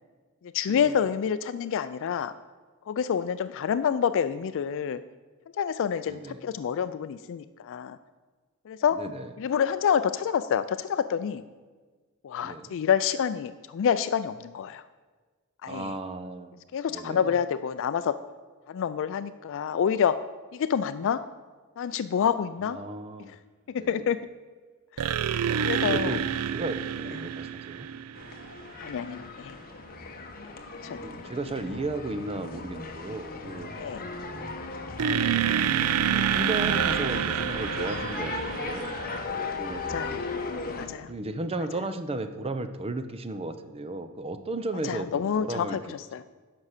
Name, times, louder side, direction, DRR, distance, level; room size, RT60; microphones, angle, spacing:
voice 1, 0.5-2.3 2.9-5.0 5.6-8.0 8.7-9.0 9.4-11.4 12.2-14.8 15.6-15.9 16.7-18.1 18.7-20.1 20.5-21.2 21.8-22.8 23.7-24.2 25.0-25.1 25.6-26.2 28.8-29.6 30.8-31.2 33.8-34.0 39.9-40.2 40.7-41.1 44.8-45.8 46.1-46.2, left 8 dB, 60° left, 13 dB, 0.3 m, -27 dB
voice 2, 6.1-6.4 8.9-9.3 12.4-12.8 15.7-16.6 16.9-17.4 22.6-23.4 23.8-24.1 25.8-27.9 31.0-33.7 36.1-39.0 39.6-39.8 41.1-45.8, right 2 dB, 25° right, 9 dB, 0.6 m, -35 dB
sound 1, 25.0-28.6 35.0-39.2, right 9 dB, 80° right, 0.4 m, -28 dB
sound 2, 28.1-40.9, left 3 dB, 45° left, 1.0 m, -36 dB
9.7 x 6.0 x 6.6 m, 1.4 s
head